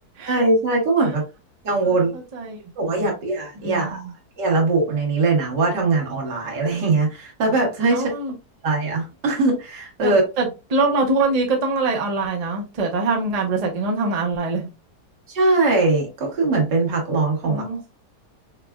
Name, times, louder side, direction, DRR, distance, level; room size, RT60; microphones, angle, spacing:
voice 1, 0.3-1.2 1.6-2.1 2.8-4.0 4.4-8.1 8.6-10.2 15.3-17.6, right 3 dB, 85° right, 2.1 m, -21 dB
voice 2, 3.6-4.1 7.9-8.3 10.0-14.7 17.4-17.9, right 3 dB, 30° right, 0.7 m, -24 dB
5.7 x 2.3 x 2.3 m
omnidirectional pair, 1.8 m